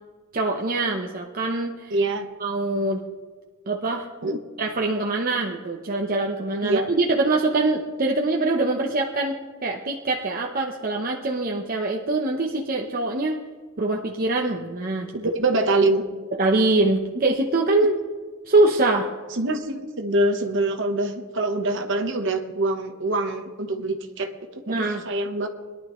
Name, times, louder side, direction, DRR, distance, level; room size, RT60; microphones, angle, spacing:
voice 1, 0.3-2.0 2.4-3.0 3.7-4.1 4.6-13.4 13.8-15.3 16.4-18.0 18.5-19.1 24.7-25.0, right 2 dB, 40° right, 0 dB, 0.8 m, -23 dB
voice 2, 1.9-2.3 4.2-4.4 6.6-6.9 15.1-16.0 19.4-25.5, right 2 dB, 60° right, 4 dB, 1.1 m, -24 dB
21.5 x 11.5 x 3.1 m, 1.4 s
head